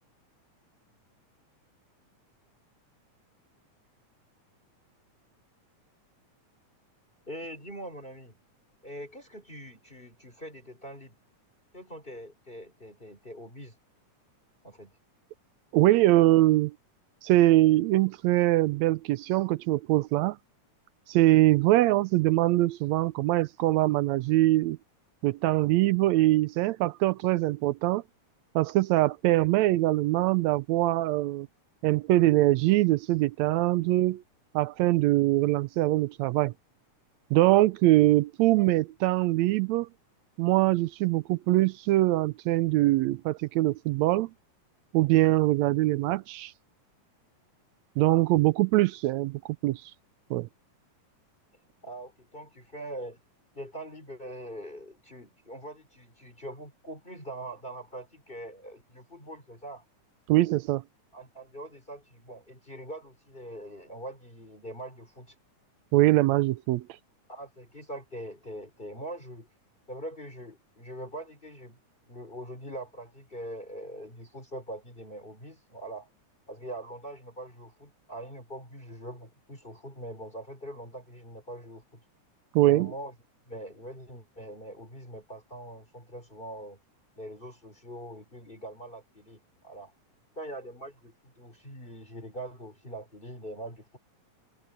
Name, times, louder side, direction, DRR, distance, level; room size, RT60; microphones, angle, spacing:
voice 1, 7.3-8.4 8.8-11.2 11.7-13.8 14.6-14.9 51.8-53.2 53.5-59.8 61.1-65.3 67.3-69.5 69.9-71.8 72.0-76.1 76.5-82.0 82.6-83.1 83.5-86.8 87.2-89.9 90.3-94.0, right 1 dB, 15° left, 4.7 m, -43 dB
voice 2, 15.7-16.7 17.2-20.4 21.1-24.8 25.2-28.0 28.5-31.5 31.8-34.2 34.5-36.5 37.3-39.9 40.4-44.3 44.9-46.5 48.0-49.9 50.3-50.5 60.3-60.8 65.9-66.8 82.5-82.9, right 17 dB, 80° right, 1.6 m, -23 dB
omnidirectional pair, 3.6 m